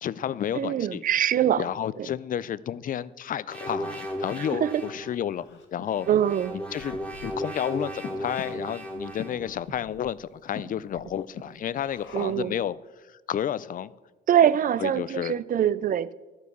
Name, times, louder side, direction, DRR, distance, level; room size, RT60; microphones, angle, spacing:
voice 1, 0.0-1.0 1.6-5.5 5.7-6.1 6.5-6.9 7.2-12.8 13.1-13.9 14.8-15.3, left 10 dB, 45° left, 0.4 m, -31 dB
voice 2, 0.5-1.6 2.0-2.1 4.4-4.8 6.1-6.6 12.1-12.5 14.3-16.1, right 10 dB, 45° right, 0.4 m, -23 dB
sound 1, 3.5-5.1 5.9-9.5, equal, 5° left, 1.5 m, -35 dB
Breathing, 4.0-12.6, left 5 dB, 70° left, 1.5 m, -45 dB
12.0 x 4.6 x 6.7 m
cardioid pair, 90°, 20 cm